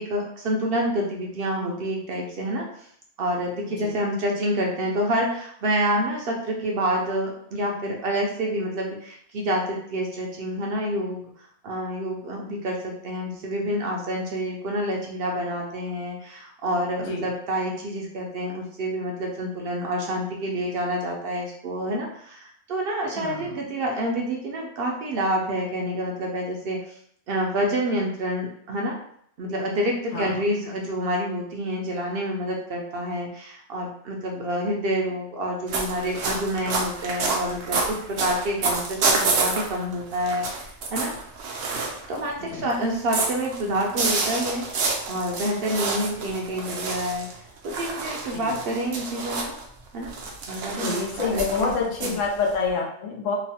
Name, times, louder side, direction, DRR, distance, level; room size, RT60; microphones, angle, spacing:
voice 1, 0.0-2.9 3.2-11.3 11.6-27.0 27.3-29.0 29.4-41.1 42.1-44.6 45.1-49.6 49.9-50.1 50.5-51.7 52.0-52.2, equal, 60° right, 0 dB, 0.6 m, -28 dB
voice 2, 23.2-23.6 30.1-30.4 42.5-42.7 48.3-48.6 50.7-53.3, left 4 dB, 90° left, 0 dB, 1.0 m, -28 dB
sound 1, 35.7-42.3 42.7-49.6 50.0-52.7, right 3 dB, 80° right, 0.9 m, -28 dB
3.0 x 2.0 x 2.7 m, 0.67 s
omnidirectional pair, 1.3 m